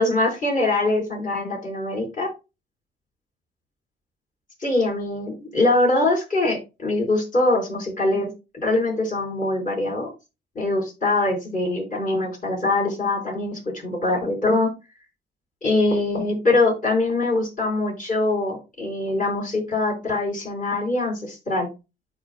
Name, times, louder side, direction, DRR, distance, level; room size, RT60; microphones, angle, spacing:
voice 1, 0.0-2.3 4.6-8.3 8.6-10.1 10.5-14.7 15.6-21.7, left 2 dB, 40° left, -1 dB, 4.7 m, -23 dB
12.5 x 4.9 x 2.3 m, 0.27 s
cardioid pair, 90°, 20 cm